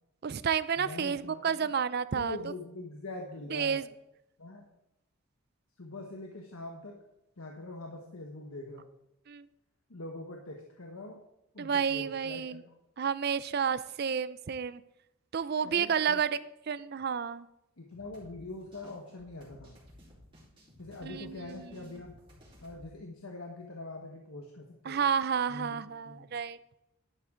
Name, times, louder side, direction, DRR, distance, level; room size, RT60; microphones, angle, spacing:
voice 1, 0.2-2.4 3.5-3.8 9.3-9.5 11.6-12.6 13.0-14.8 15.3-16.4 16.7-17.5 21.0-21.7 24.9-26.6, right 7 dB, 45° right, 16 dB, 0.4 m, -30 dB
voice 2, 0.8-1.7 2.1-3.8 4.4-4.6 5.8-7.0 7.4-8.9 9.9-11.2 11.5-12.7 15.6-16.2 17.8-19.8 20.8-22.1 22.6-25.0 25.5-26.3, left 2 dB, 75° left, 1 dB, 1.3 m, -43 dB
sound 1, 17.9-22.8, equal, 25° right, 4.2 m, -56 dB
11.5 x 9.4 x 3.9 m, 0.87 s
head